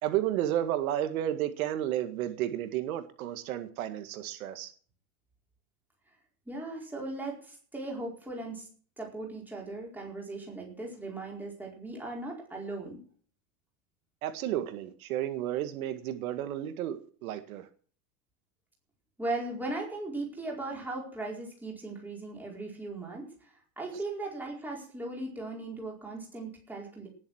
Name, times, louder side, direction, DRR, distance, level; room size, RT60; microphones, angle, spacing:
voice 1, 0.0-4.7 14.2-17.7, right 12 dB, 70° right, 9 dB, 1.9 m, -32 dB
voice 2, 6.5-8.7 9.0-13.0 19.2-27.1, right 2 dB, 5° right, -1 dB, 4.6 m, -38 dB
19.0 x 7.6 x 6.3 m, 0.43 s
supercardioid pair, 180°, 44 cm